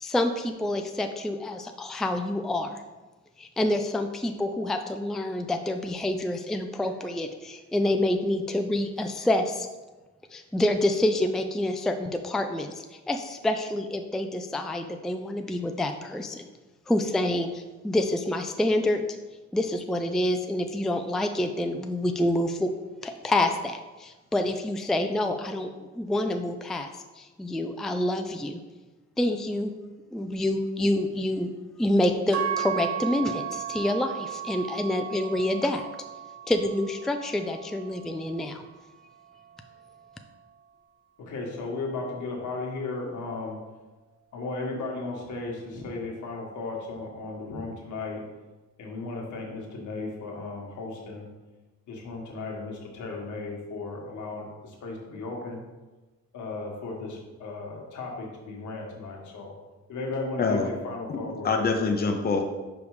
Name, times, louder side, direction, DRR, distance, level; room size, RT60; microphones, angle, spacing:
voice 1, 0.0-2.8 3.4-9.7 10.3-16.5 16.9-19.0 19.5-22.7 23.0-26.9 27.2-28.6 29.2-29.7 30.1-31.5 31.8-35.9 36.5-38.6, left 1 dB, ahead, 6 dB, 0.4 m, -27 dB
sound 1, 32.3-40.6, right 10 dB, 70° right, 0.9 m, -36 dB
voice 2, 41.2-43.6 44.3-48.2 48.8-51.3 51.9-55.6 56.3-59.5 59.9-61.8, left 3 dB, 75° left, -1 dB, 1.7 m, -35 dB
voice 3, 60.4-60.7 61.1-62.4, left 4 dB, 30° left, 3 dB, 0.7 m, -25 dB
5.2 x 4.7 x 4.8 m, 1.2 s
cardioid pair, 90°, 30 cm